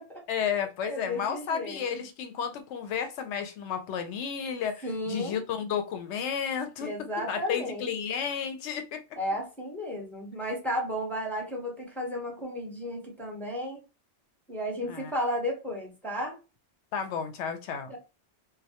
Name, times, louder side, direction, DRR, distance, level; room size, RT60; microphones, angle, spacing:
voice 1, 0.3-9.0 14.8-15.1 16.9-17.9, left 7 dB, 75° left, 0.8 m, -32 dB
voice 2, 0.8-2.0 4.8-5.4 6.8-7.9 9.2-13.8 14.5-16.4 17.9-18.0, equal, ahead, 0.6 m, -33 dB
2.2 x 2.1 x 2.7 m
omnidirectional pair, 1.2 m